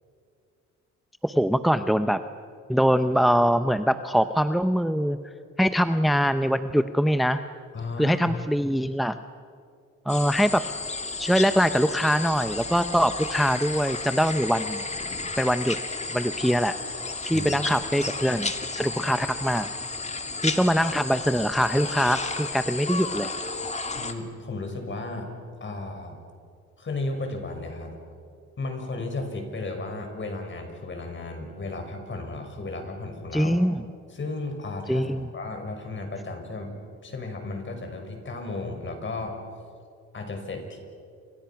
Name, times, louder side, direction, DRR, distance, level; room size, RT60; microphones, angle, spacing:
voice 1, 1.2-2.2 2.7-5.2 5.6-7.4 8.0-9.2 10.1-10.7 11.2-14.8 15.4-15.8 16.1-16.8 17.2-19.7 20.4-23.3 33.3-33.8 34.9-35.3, equal, ahead, 10 dB, 0.8 m, -23 dB
voice 2, 7.7-8.3 17.3-17.6 24.0-26.2 26.8-27.9 28.6-33.6 34.1-36.7 37.0-39.4 40.1-40.8, left 2 dB, 40° left, 4 dB, 6.0 m, -34 dB
sound 1, 10.1-24.1, left 3 dB, 20° left, 2.2 m, -33 dB
30.0 x 26.5 x 6.0 m, 2.3 s
cardioid pair, 90°, 30 cm